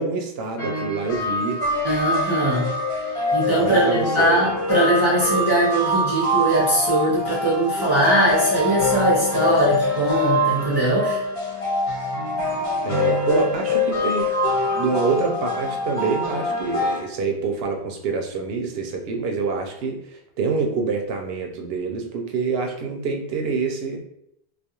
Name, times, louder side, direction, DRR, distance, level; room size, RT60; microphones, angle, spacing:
voice 1, 0.0-1.6 3.6-4.4 12.8-14.3 14.7-24.0, right 4 dB, 75° right, 2 dB, 0.8 m, -26 dB
sound 1, 0.6-17.0, left 2 dB, 75° left, 1.2 m, -24 dB
voice 2, 1.8-2.7 3.3-11.2, right 1 dB, 25° right, -7 dB, 0.7 m, -21 dB
2.3 x 2.3 x 2.8 m, 0.75 s
omnidirectional pair, 1.0 m